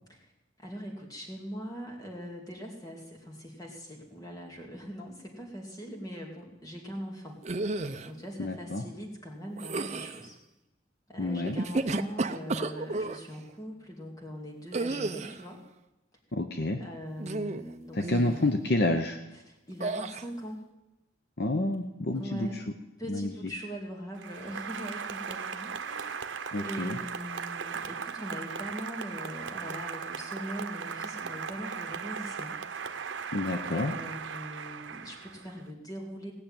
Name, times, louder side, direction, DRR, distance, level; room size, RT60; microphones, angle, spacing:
voice 1, 0.6-10.4 11.1-15.6 16.8-18.4 19.3-20.6 22.1-22.6 23.0-32.6 33.7-36.3, equal, 20° left, 0 dB, 2.5 m, -41 dB
sound 1, 7.4-8.1 9.6-10.2 11.4-13.2 14.7-15.4 17.2-17.7 18.0-18.4 19.8-20.2, right 3 dB, 35° right, 0.6 m, -32 dB
voice 2, 8.4-8.8 11.2-11.6 16.3-16.8 17.9-19.2 21.4-22.5 23.1-23.3 26.5-27.0 33.3-33.9, left 2 dB, 55° left, 6 dB, 0.8 m, -29 dB
Applause, 24.2-35.7, right 6 dB, 85° right, 0.8 m, -38 dB
17.5 x 6.6 x 8.9 m, 0.99 s
head